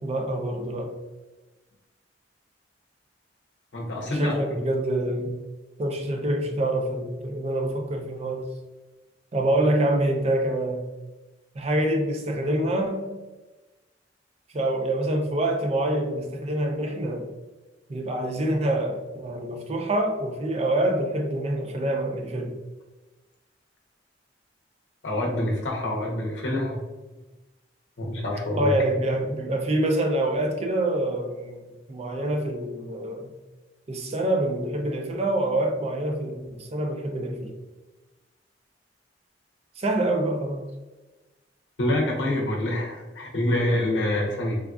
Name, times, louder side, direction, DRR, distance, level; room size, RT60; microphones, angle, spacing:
voice 1, 0.0-0.9 4.1-5.4 5.8-8.5 9.3-10.8 11.5-13.1 14.5-17.3 17.9-22.6 28.6-33.3 33.9-37.5 39.8-40.6, right 1 dB, 35° right, 0.4 m, -26 dB
voice 2, 3.7-4.3 25.0-26.8 28.0-28.7 41.8-44.6, left 1 dB, 80° left, 0.6 m, -26 dB
3.4 x 2.3 x 2.3 m
head